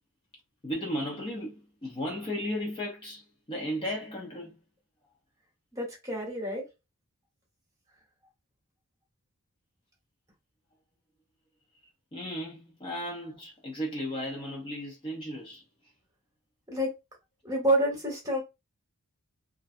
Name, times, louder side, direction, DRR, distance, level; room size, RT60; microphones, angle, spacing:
voice 1, 0.6-4.6 12.1-15.9, equal, 20° left, 0.5 m, -35 dB
voice 2, 5.7-6.6 16.7-16.9 17.4-18.4, right 1 dB, 15° right, 1.1 m, -28 dB
2.5 x 2.2 x 2.5 m
head